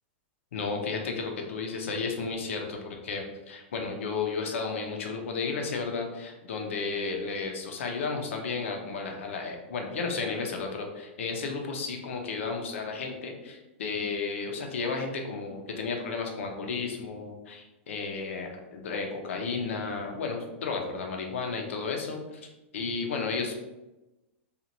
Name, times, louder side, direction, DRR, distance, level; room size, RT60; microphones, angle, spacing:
voice 1, 0.5-22.2 22.7-23.7, left 4 dB, 80° left, 2 dB, 0.6 m, -33 dB
2.9 x 2.4 x 2.6 m, 1.0 s
supercardioid pair, 160°, 7 cm